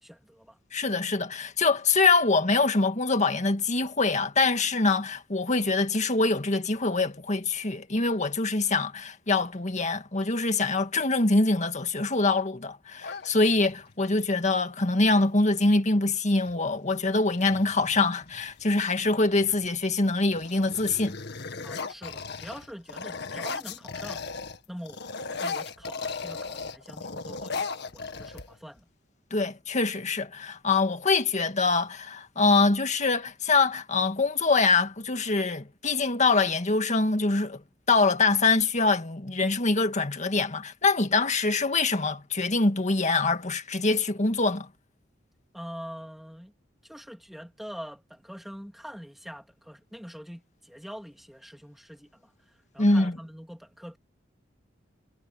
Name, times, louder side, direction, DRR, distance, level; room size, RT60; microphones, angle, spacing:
voice 1, 0.0-0.6 21.6-24.3 24.7-25.0 25.4-28.9 45.5-46.5 46.8-52.3 52.7-54.0, equal, ahead, 2.9 m, -44 dB
voice 2, 0.7-21.2 29.3-37.6 37.9-44.7 52.8-53.2, left 3 dB, 40° left, 1.9 m, -24 dB
sound 1, 13.0-13.9 15.6-15.8 16.1-16.6 17.1-18.6 19.3-19.7 20.0-24.6 24.8-28.8, left 4 dB, 60° left, 1.9 m, -37 dB
head